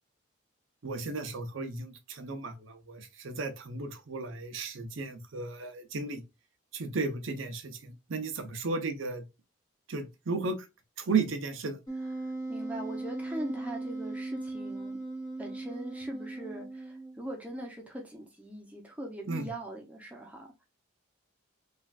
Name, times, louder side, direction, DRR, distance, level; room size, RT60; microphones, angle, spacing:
voice 1, 0.8-6.2 6.7-9.2 9.9-10.6 11.0-11.8 19.3-19.5, right 4 dB, 75° right, 0.6 m, -34 dB
Wind instrument woodwind instrument, 11.9-17.3, right 2 dB, 20° left, 1.0 m, -38 dB
voice 2, 12.5-15.0 15.4-20.5, right 1 dB, 5° right, 0.6 m, -41 dB
3.3 x 2.4 x 2.3 m
head